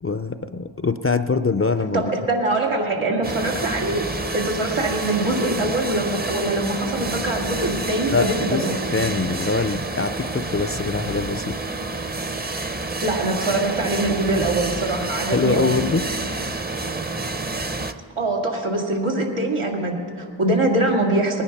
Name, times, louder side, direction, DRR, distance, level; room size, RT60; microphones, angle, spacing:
voice 1, 0.0-2.1 8.1-11.6 15.3-16.0, left 4 dB, 30° left, 10 dB, 0.5 m, -23 dB
voice 2, 1.9-4.1 4.3-8.8 13.0-15.8 18.2-21.4, right 2 dB, 90° right, -1 dB, 2.2 m, -23 dB
sound 1, 3.2-17.9, right 3 dB, 20° right, 0.7 m, -29 dB
19.5 x 9.9 x 5.9 m, 2.3 s
wide cardioid pair, 45°, 48 cm